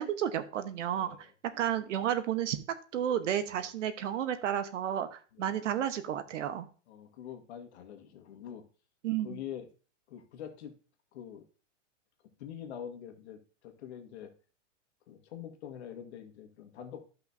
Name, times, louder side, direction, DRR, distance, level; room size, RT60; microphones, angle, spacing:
voice 1, 0.0-2.6 2.9-6.7 9.0-9.4, right 10 dB, 70° right, 11 dB, 1.2 m, -32 dB
voice 2, 0.9-1.3 3.6-3.7 5.3-5.5 6.9-8.6 9.2-9.7 10.1-10.7 11.1-11.4 12.4-14.3 15.1-17.0, left 9 dB, 60° left, 5 dB, 1.7 m, -45 dB
14.0 x 5.6 x 2.8 m, 0.37 s
hypercardioid pair, 145°, 37 cm